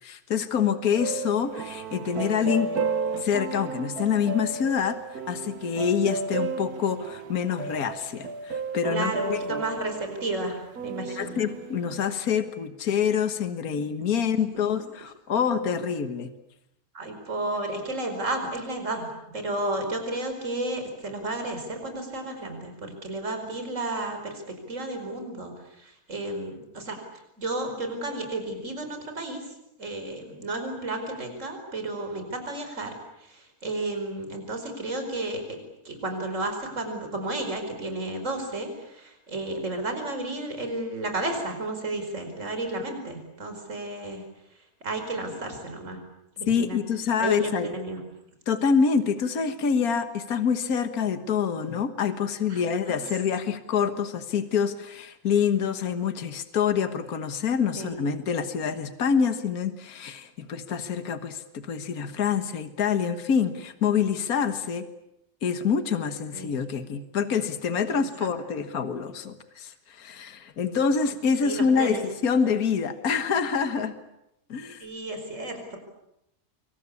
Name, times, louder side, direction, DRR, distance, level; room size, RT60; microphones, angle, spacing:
voice 1, 0.0-2.7 3.2-5.0 5.3-9.6 11.2-16.3 46.5-47.7 48.5-64.9 65.4-73.9 74.5-74.8, left 6 dB, 70° left, 9 dB, 1.9 m, -26 dB
sound 1, 0.9-12.0, right 4 dB, 70° right, 1.8 m, -33 dB
voice 2, 8.9-11.4 16.9-19.1 19.3-27.0 27.4-29.4 29.8-32.9 33.2-35.6 35.8-44.2 44.8-46.0 46.4-46.8 47.2-48.0 52.5-53.0 57.8-57.9 66.3-66.5 67.9-68.0 71.4-72.0 74.8-75.8, right 2 dB, 50° right, 5 dB, 5.2 m, -32 dB
26.0 x 24.0 x 8.5 m, 0.84 s
omnidirectional pair, 1.6 m